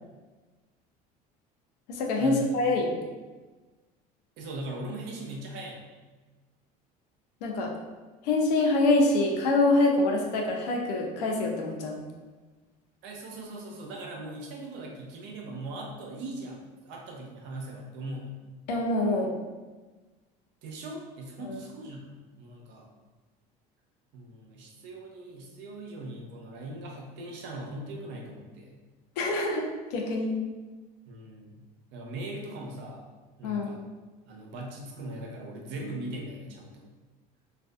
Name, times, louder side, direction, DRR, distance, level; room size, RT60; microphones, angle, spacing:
voice 1, 1.9-2.9 7.4-7.7 8.2-12.0 18.7-19.3 21.4-21.6 29.2-30.3 33.4-33.8, left 2 dB, 90° left, 1 dB, 0.5 m, -25 dB
voice 2, 4.4-5.8 13.0-18.3 20.6-22.9 24.1-28.8 31.1-31.7 31.9-33.0 33.4-33.8 34.3-36.9, right 1 dB, 65° right, 0 dB, 0.6 m, -40 dB
2.5 x 2.2 x 2.3 m, 1.3 s
supercardioid pair, 85°, 20 cm